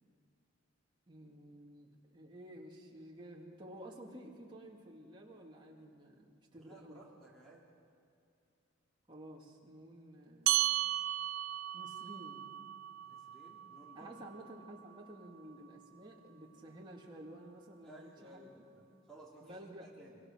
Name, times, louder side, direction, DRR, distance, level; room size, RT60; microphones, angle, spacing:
voice 1, 1.1-7.0 9.1-10.8 11.7-12.5 13.9-18.5 19.4-19.9, right 1 dB, 25° right, -2 dB, 2.5 m, -52 dB
voice 2, 6.5-7.6 13.0-14.2 17.8-20.2, right 1 dB, 5° left, -4 dB, 2.8 m, -57 dB
sound 1, 10.5-15.3, right 14 dB, 85° right, 0.5 m, -36 dB
23.5 x 23.5 x 6.6 m, 2.5 s
head